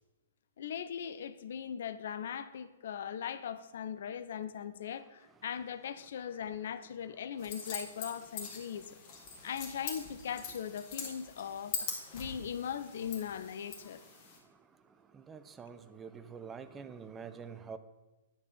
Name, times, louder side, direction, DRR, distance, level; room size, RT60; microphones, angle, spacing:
voice 1, 0.6-8.9 9.4-11.8 12.1-14.0, left 8 dB, 55° left, 0.5 m, -39 dB
sound 1, 7.4-14.4, left 5 dB, 40° left, 2.0 m, -43 dB
voice 2, 15.1-17.8, right 6 dB, 15° right, 0.5 m, -46 dB
9.9 x 4.2 x 6.5 m
figure-of-eight pair, 115°, 0 cm